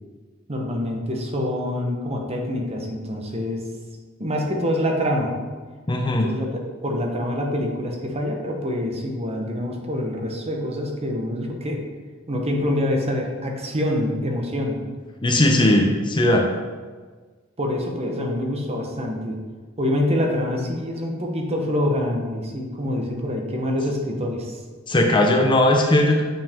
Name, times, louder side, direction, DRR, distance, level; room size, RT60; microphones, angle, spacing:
voice 1, 0.5-3.6 4.2-5.3 6.1-6.5 6.8-11.8 12.3-14.8 15.6-15.8 17.6-19.4 19.8-24.6, left 1 dB, 30° right, 1 dB, 1.0 m, -25 dB
voice 2, 5.9-6.3 15.2-16.5 24.9-26.2, left 1 dB, 25° left, 2 dB, 0.6 m, -18 dB
7.3 x 5.6 x 3.5 m, 1.4 s
head